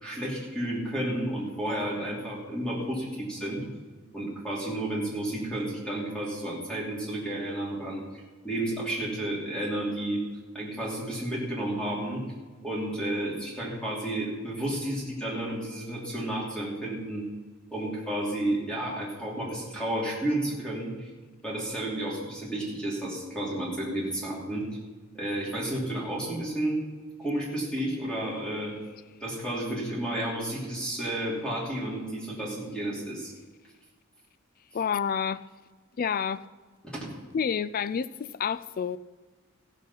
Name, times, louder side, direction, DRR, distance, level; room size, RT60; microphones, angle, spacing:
voice 1, 0.0-3.7 4.1-8.0 8.4-10.2 10.5-12.2 12.6-17.3 17.7-21.1 21.4-24.6 25.1-26.8 27.2-28.7 29.2-33.3 36.9-37.1, right 1 dB, 5° left, -5 dB, 2.8 m, -31 dB
voice 2, 34.7-35.4 36.0-36.4 37.3-39.0, left 7 dB, 45° left, 16 dB, 0.3 m, -29 dB
15.0 x 6.5 x 5.6 m, 1.3 s
head